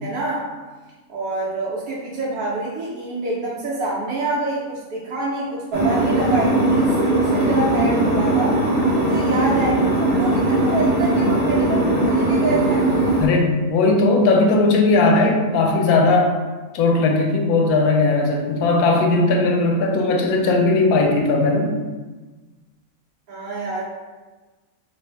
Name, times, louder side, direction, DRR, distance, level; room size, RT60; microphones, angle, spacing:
voice 1, 0.0-0.5 1.1-8.6 8.9-12.9 23.3-23.8, right 2 dB, 85° right, -6 dB, 1.1 m, -26 dB
sound 1, 5.7-13.3, right 2 dB, 30° right, 0.6 m, -19 dB
voice 2, 13.2-16.3 16.7-21.7, left 3 dB, 85° left, 2 dB, 1.1 m, -18 dB
3.3 x 2.5 x 3.3 m, 1.3 s
omnidirectional pair, 1.5 m